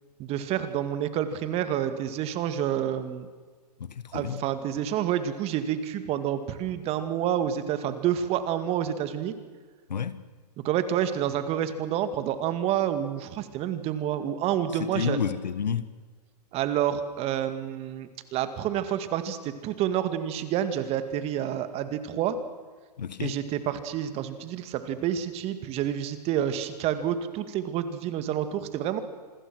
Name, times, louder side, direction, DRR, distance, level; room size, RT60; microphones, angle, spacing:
voice 1, 0.2-3.3 4.1-9.4 10.6-15.2 16.5-22.4 23.2-29.0, right 10 dB, 30° right, 2.1 m, -28 dB
voice 2, 3.8-4.4 9.9-10.2 14.8-15.9 23.0-23.3, left 7 dB, 85° left, 1.7 m, -30 dB
27.0 x 20.5 x 6.3 m
hypercardioid pair, 130°, 21 cm